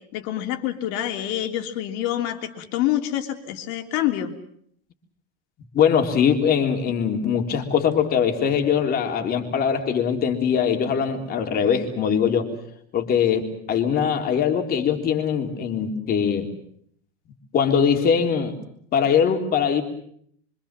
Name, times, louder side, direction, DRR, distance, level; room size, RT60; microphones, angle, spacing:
voice 1, 0.1-4.3, left 12 dB, 45° left, 5 dB, 3.3 m, -26 dB
voice 2, 5.7-12.5 12.9-16.5 17.5-18.5 18.9-19.8, left 7 dB, 25° left, 4 dB, 3.6 m, -21 dB
26.0 x 25.5 x 7.5 m, 0.66 s
supercardioid pair, 160°, 34 cm